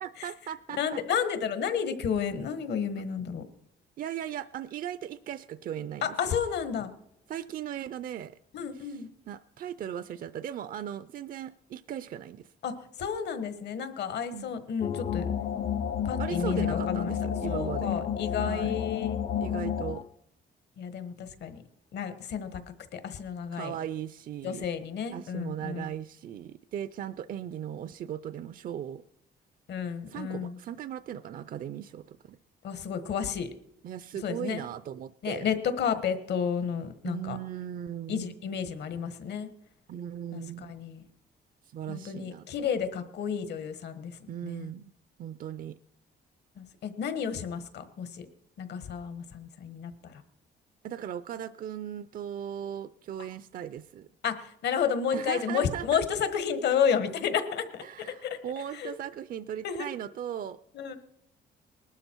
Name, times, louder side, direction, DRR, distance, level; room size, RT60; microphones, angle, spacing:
voice 1, 0.0-1.0 4.0-6.2 7.3-8.4 8.7-12.5 14.3-14.6 16.2-18.0 18.4-18.8 19.4-20.0 23.5-24.7 25.1-29.0 30.1-32.4 33.8-35.5 37.0-38.3 39.9-40.8 41.7-42.5 44.3-44.9 45.2-45.8 50.8-54.1 55.1-56.0 57.8-60.6, right 10 dB, 50° right, 14 dB, 0.5 m, -38 dB
voice 2, 0.8-3.4 6.0-6.9 8.5-9.1 12.6-15.3 16.0-17.1 17.5-19.1 20.8-21.6 21.9-22.6 22.9-23.7 24.4-25.8 29.7-30.6 32.6-33.5 34.2-34.6 35.2-37.4 38.1-39.5 40.3-41.0 41.9-44.2 44.4-44.7 46.6-48.3 48.6-50.2 54.2-58.4 58.7-58.9 59.6-59.9 60.7-61.0, left 7 dB, 70° left, 11 dB, 1.4 m, -31 dB
sound 1, 14.8-20.0, left 8 dB, 40° left, 0.5 m, -31 dB
20.0 x 12.0 x 4.5 m, 0.76 s
cardioid pair, 140°, 18 cm